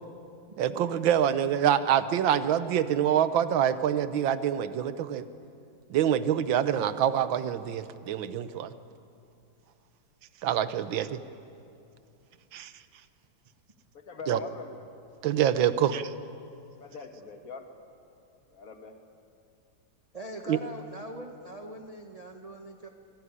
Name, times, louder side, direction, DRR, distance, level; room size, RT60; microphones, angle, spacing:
voice 1, 0.6-5.2 5.9-8.7 10.4-11.2 12.5-12.7 14.3-14.4 15.2-16.1 20.5-20.6, right 9 dB, 80° right, 13 dB, 1.6 m, -26 dB
voice 2, 13.9-14.9 16.8-17.7 18.5-18.9, left 4 dB, 45° left, 5 dB, 2.1 m, -43 dB
voice 3, 20.1-22.9, right 1 dB, 25° right, 3 dB, 1.1 m, -42 dB
25.0 x 18.0 x 9.7 m, 2.6 s
omnidirectional pair, 2.1 m